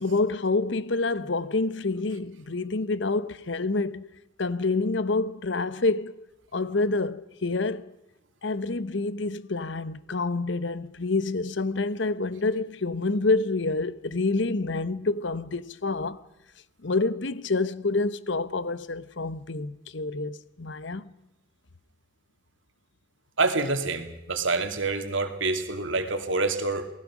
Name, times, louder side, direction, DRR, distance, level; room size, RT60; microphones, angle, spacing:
voice 1, 0.0-4.1 4.4-6.2 6.5-7.8 8.4-16.2 16.8-21.1, left 3 dB, 65° left, 0.9 m, -27 dB
voice 2, 23.4-26.9, right 3 dB, 70° right, 2.7 m, -27 dB
28.0 x 19.5 x 6.2 m
head